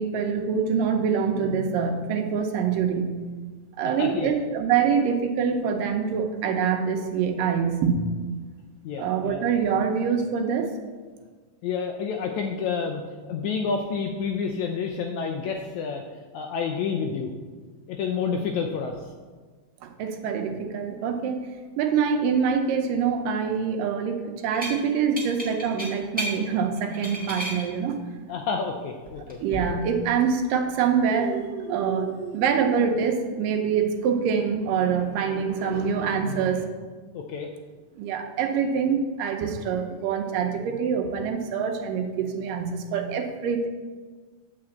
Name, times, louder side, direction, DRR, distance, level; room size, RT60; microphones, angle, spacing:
voice 1, 0.0-3.2 3.8-8.1 9.0-10.7 19.8-21.5 21.8-28.0 29.4-36.7 38.0-43.7, right 6 dB, 80° right, 5 dB, 2.4 m, -25 dB
voice 2, 4.0-4.3 8.8-9.4 11.6-13.0 13.3-16.0 16.3-17.3 17.9-18.9 28.3-29.4 37.1-37.5, left 5 dB, 80° left, 3 dB, 1.7 m, -29 dB
sound 1, 24.5-24.8 25.2-26.4 26.8-27.6 29.1-29.6, right 1 dB, 5° right, 0.6 m, -32 dB
8.7 x 4.8 x 7.6 m, 1.5 s
omnidirectional pair, 3.9 m